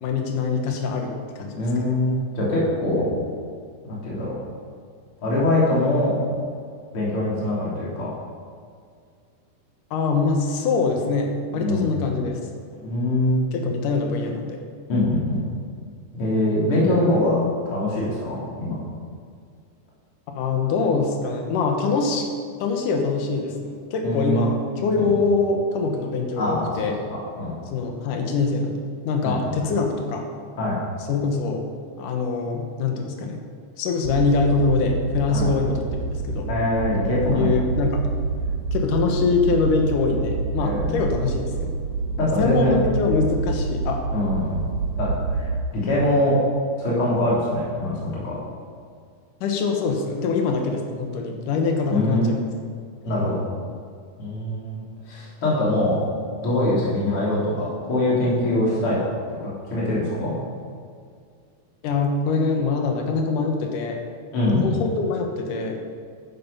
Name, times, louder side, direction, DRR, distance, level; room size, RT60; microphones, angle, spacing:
voice 1, 0.0-1.9 9.9-12.4 13.5-14.6 20.3-22.3 22.6-27.0 27.7-28.8 29.1-30.3 31.1-31.7 32.0-33.4 33.8-36.5 37.3-38.0 38.7-41.7 42.4-44.0 49.4-52.4 61.8-64.0 64.5-65.8, left 4 dB, 85° left, 3 dB, 2.9 m, -24 dB
voice 2, 1.6-3.1 3.9-4.4 5.2-6.2 6.9-8.1 11.5-11.9 12.8-13.4 14.9-15.4 16.2-18.8 24.0-24.5 24.9-25.0 26.4-26.7 27.1-27.5 29.2-29.5 30.6-30.8 35.3-35.5 36.5-37.5 40.6-41.0 42.2-42.8 44.1-44.6 45.0-46.4 46.8-48.4 51.9-52.3 53.0-53.4 54.2-56.0 56.4-59.0 59.3-60.3 64.3-64.7, left 1 dB, 45° left, -6 dB, 4.1 m, -23 dB
sound 1, 34.0-45.6, right 3 dB, 75° right, 1.9 m, -27 dB
13.0 x 9.9 x 5.6 m, 2.2 s
omnidirectional pair, 3.6 m